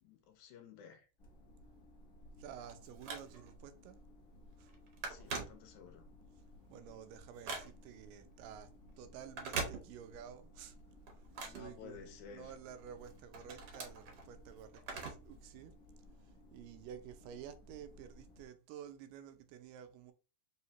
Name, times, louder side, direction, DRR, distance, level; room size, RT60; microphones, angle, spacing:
voice 1, 0.0-1.1 5.1-6.1 11.4-12.5, left 7 dB, 75° left, 2.0 m, -54 dB
sound 1, 1.2-18.5, left 1 dB, 55° left, 0.8 m, -59 dB
Telephone, 2.2-3.7 4.1-4.3 4.6-6.1 6.5-8.1 9.2-10.3 10.7-12.4 12.9-15.4 15.7-15.8 16.7-16.8, right 4 dB, 60° right, 1.5 m, -44 dB
voice 2, 2.4-4.0 4.6-4.7 6.7-10.8 11.4-15.8 16.1-20.1, right 9 dB, 90° right, 2.3 m, -52 dB
5.0 x 3.1 x 2.8 m
omnidirectional pair, 3.8 m